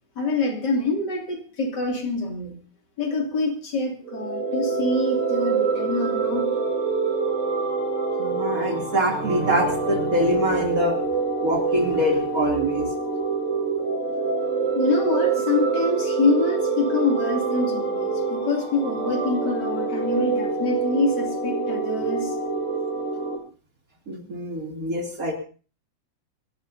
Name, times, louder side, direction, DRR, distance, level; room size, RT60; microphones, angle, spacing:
voice 1, 0.2-2.6 3.0-6.5 14.7-22.4, left 3 dB, 65° left, 1 dB, 3.5 m, -26 dB
sound 1, 4.0-23.4, right 4 dB, 75° right, 4.5 m, -26 dB
voice 2, 8.2-11.0 11.4-12.9 24.1-25.3, equal, 50° right, 1 dB, 3.4 m, -24 dB
25.5 x 13.5 x 2.8 m, 0.38 s
omnidirectional pair, 2.0 m